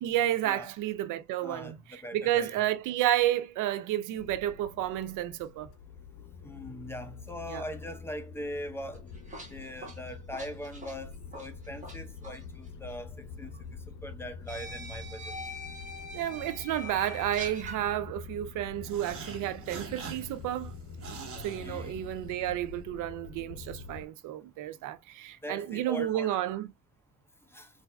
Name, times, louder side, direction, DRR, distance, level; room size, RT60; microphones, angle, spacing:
voice 1, 0.0-5.7 7.5-7.6 16.1-20.7 21.4-26.7, right 12 dB, 85° right, 0.5 m, -31 dB
voice 2, 1.4-2.5 6.4-9.1 9.5-13.5 14.0-15.3 21.6-21.9 25.4-26.4 27.5-27.7, equal, 10° left, 0.7 m, -41 dB
sound 1, 4.2-24.1, left 5 dB, 80° left, 0.6 m, -46 dB
sound 2, 8.9-12.0 12.2-12.4 13.5-13.6 14.5-17.8, left 1 dB, 25° right, 1.4 m, -43 dB
sound 3, 18.8-22.5, right 5 dB, 45° right, 1.2 m, -44 dB
3.9 x 2.5 x 2.2 m
cardioid pair, 90°, 30 cm